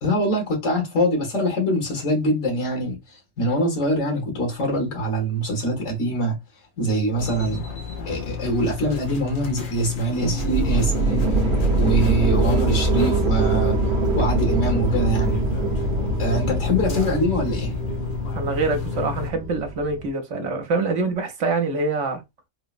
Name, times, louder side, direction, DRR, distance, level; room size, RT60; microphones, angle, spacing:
voice 1, 0.0-3.0 3.4-6.4 6.8-7.6 8.1-11.3 11.8-13.8 14.1-15.4 16.2-17.7, equal, 75° left, 1.7 m, -24 dB
sound 1, 7.2-19.3, left 8 dB, 50° left, 0.6 m, -31 dB
sound 2, 10.1-20.1, right 2 dB, 45° right, 0.9 m, -23 dB
voice 2, 16.9-17.3 18.3-22.2, right 3 dB, 70° right, 1.1 m, -25 dB
3.8 x 2.0 x 2.4 m
omnidirectional pair, 1.3 m